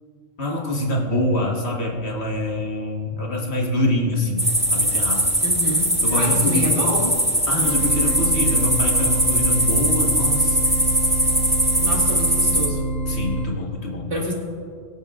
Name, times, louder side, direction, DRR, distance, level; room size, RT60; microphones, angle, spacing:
voice 1, 0.4-5.3 6.0-6.7 7.5-10.6 13.1-14.2, left 1 dB, 60° left, -1 dB, 1.6 m, -25 dB
sound 1, 4.4-12.7, right 1 dB, 5° right, 1.0 m, -21 dB
voice 2, 5.4-7.1 11.8-12.9 14.1-14.3, equal, 45° right, -3 dB, 2.0 m, -27 dB
sound 2, 7.6-13.5, right 1 dB, 85° left, 1.5 m, -26 dB
23.0 x 7.8 x 2.4 m, 2.2 s
omnidirectional pair, 1.3 m